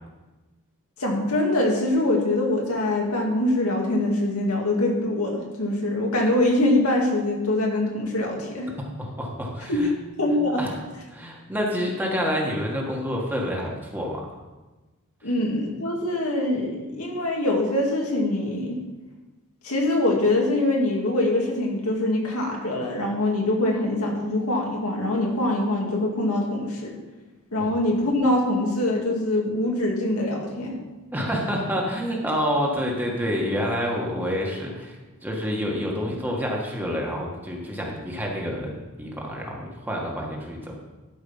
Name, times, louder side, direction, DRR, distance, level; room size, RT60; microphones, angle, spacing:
voice 1, 1.0-8.7 9.7-9.9 10.2-10.6 15.2-18.8 19.6-27.0 27.5-30.8, left 1 dB, 85° left, -1 dB, 2.2 m, -24 dB
voice 2, 9.0-9.9 10.6-10.8 11.1-14.3 27.6-27.7 31.1-34.9 35.2-40.7, equal, 10° right, -2 dB, 1.6 m, -28 dB
12.0 x 5.4 x 5.6 m, 1.2 s
head